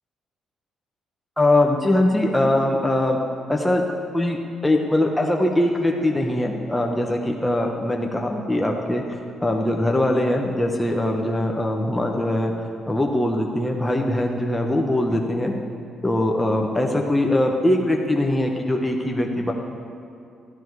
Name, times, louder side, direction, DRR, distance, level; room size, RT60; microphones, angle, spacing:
voice 1, 1.4-3.2 3.5-3.8 4.1-9.0 9.4-15.5 16.0-19.5, left 1 dB, 10° left, 0 dB, 1.0 m, -22 dB
13.0 x 11.0 x 4.7 m, 2.5 s
cardioid pair, 90°, 0 cm